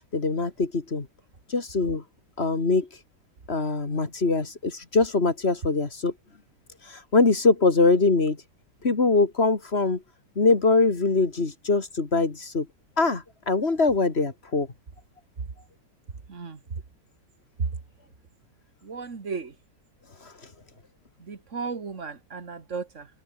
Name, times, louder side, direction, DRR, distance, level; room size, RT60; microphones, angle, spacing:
voice 1, 0.1-1.1 1.5-2.0 2.4-2.9 3.5-6.1 6.9-8.4 8.8-10.0 10.4-12.7 13.0-14.7, left 3 dB, 35° left, 2.6 m, -23 dB
voice 2, 16.3-16.6 17.6-17.7 18.8-19.5 21.2-23.1, right 5 dB, 45° right, 2.4 m, -34 dB
omnidirectional pair, 1.9 m